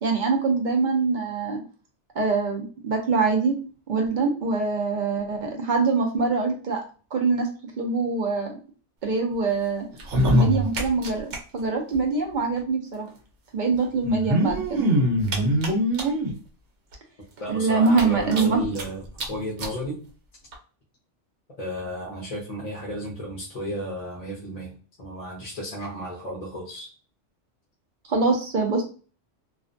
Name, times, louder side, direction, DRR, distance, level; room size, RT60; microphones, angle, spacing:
voice 1, 0.0-1.6 2.2-3.5 3.9-6.8 7.1-7.5 7.8-8.6 9.0-9.9 10.3-13.1 13.5-14.9 17.5-18.6 28.1-28.8, right 4 dB, 55° right, 2 dB, 0.6 m, -24 dB
sound 1, 9.9-11.4 11.6-11.7 11.9-12.0 13.1-13.2 14.0-16.3 16.9-17.0 17.4-17.5 17.9-18.8 19.2-19.3 19.6-19.7 20.5-20.6, equal, 80° right, 1.0 m, -23 dB
voice 2, 17.4-20.1 21.6-24.7 25.0-26.9, equal, 40° left, -3 dB, 0.6 m, -33 dB
2.4 x 2.1 x 2.5 m, 0.38 s
omnidirectional pair, 1.2 m